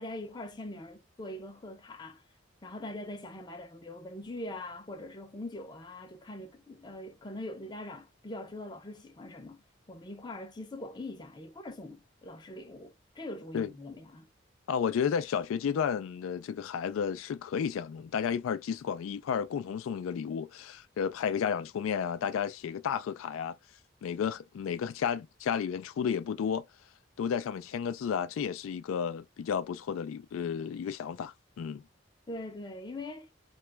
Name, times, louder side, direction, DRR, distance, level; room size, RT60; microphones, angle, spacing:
voice 1, 0.0-2.2 2.6-14.3 32.3-33.3, left 1 dB, 20° left, 0.5 m, -42 dB
voice 2, 14.7-23.6 24.0-26.6 27.2-31.8, left 7 dB, 90° left, 0.3 m, -32 dB
2.9 x 2.3 x 3.3 m
head